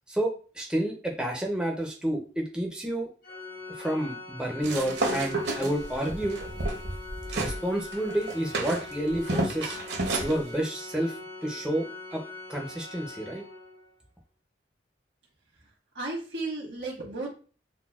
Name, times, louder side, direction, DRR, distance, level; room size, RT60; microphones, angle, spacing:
voice 1, 0.5-3.1 3.8-6.4 7.3-9.8 10.2-11.1 11.4-12.2 12.5-13.4, right 1 dB, 5° right, 0 dB, 0.4 m, -30 dB
Organ, 3.2-13.9, left 3 dB, 50° left, 0.8 m, -42 dB
sound 1, 4.6-7.6 7.9-10.3, right 2 dB, 65° right, 0.7 m, -31 dB
voice 2, 15.5-17.3, right 2 dB, 90° right, -2 dB, 1.4 m, -35 dB
3.8 x 2.1 x 2.3 m, 0.38 s
head